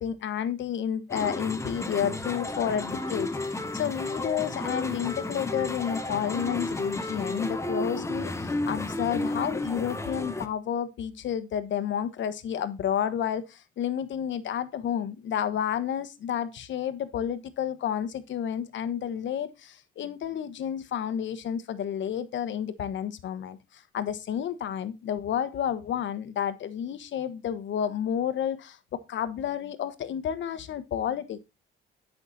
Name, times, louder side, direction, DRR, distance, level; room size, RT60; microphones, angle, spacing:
voice 1, 0.0-3.3 3.7-28.8 29.1-31.4, left 9 dB, 70° left, 1.2 m, -30 dB
sound 1, 1.1-10.5, left 2 dB, 15° left, 1.2 m, -32 dB
11.0 x 6.0 x 4.1 m
cardioid pair, 90°, 20 cm